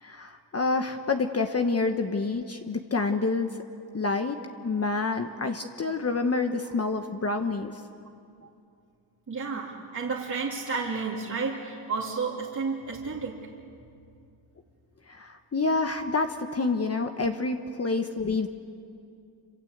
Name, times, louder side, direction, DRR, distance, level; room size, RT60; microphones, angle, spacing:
voice 1, 0.0-3.5 3.9-4.4 4.6-7.8 15.1-18.5, left 3 dB, 35° left, 5 dB, 1.2 m, -28 dB
voice 2, 9.3-13.5, right 4 dB, 40° right, -3 dB, 2.6 m, -31 dB
27.0 x 26.5 x 8.1 m, 2.5 s
cardioid pair, 100°, 45 cm